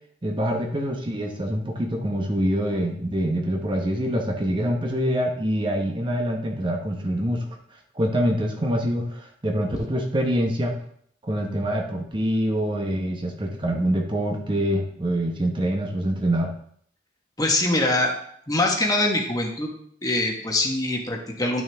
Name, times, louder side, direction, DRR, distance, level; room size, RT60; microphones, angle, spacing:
voice 1, 0.2-7.4 7.9-10.7 11.2-16.5, equal, 25° right, 1 dB, 1.0 m, -25 dB
voice 2, 17.4-18.1 18.5-19.7 20.0-21.6, left 2 dB, 20° left, 1 dB, 1.4 m, -23 dB
11.0 x 6.2 x 3.5 m, 0.66 s
head